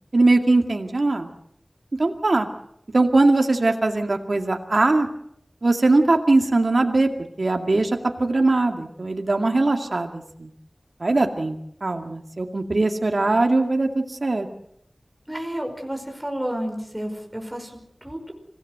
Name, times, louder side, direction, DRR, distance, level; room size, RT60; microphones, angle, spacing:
voice 1, 0.1-1.3 2.0-2.5 2.9-5.1 5.6-7.1 7.4-10.5 11.0-14.5, right 2 dB, 80° right, 4 dB, 2.3 m, -21 dB
voice 2, 15.3-18.3, equal, 10° right, 2 dB, 5.2 m, -31 dB
26.5 x 17.5 x 7.9 m, 0.73 s
wide cardioid pair, 45°, 0 cm